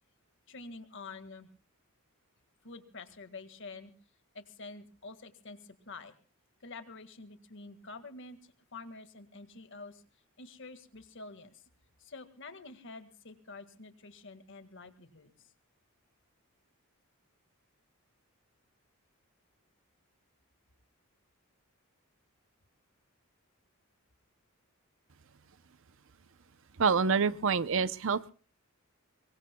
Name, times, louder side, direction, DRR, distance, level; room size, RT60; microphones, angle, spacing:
voice 1, 0.5-1.5 2.6-3.9 4.3-6.2 6.6-10.0 10.4-11.6 12.0-15.5, left 3 dB, 60° left, 9 dB, 1.9 m, -48 dB
voice 2, 26.8-28.3, right 5 dB, 60° right, 15 dB, 0.7 m, -27 dB
24.5 x 22.5 x 2.3 m, 0.37 s
head